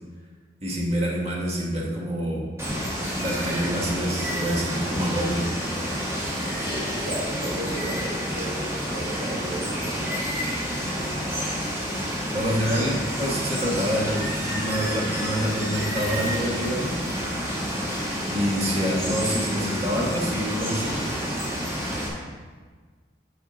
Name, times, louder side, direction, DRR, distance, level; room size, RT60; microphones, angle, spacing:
voice 1, 0.6-2.5 3.2-5.5 12.3-17.0 18.3-21.1, equal, 35° right, -3 dB, 1.4 m, -27 dB
Water, 2.6-22.1, equal, 15° right, 1.4 m, -29 dB
voice 2, 6.7-10.2, right 1 dB, 70° right, -6 dB, 1.4 m, -35 dB
9.6 x 5.7 x 3.9 m, 1.5 s
head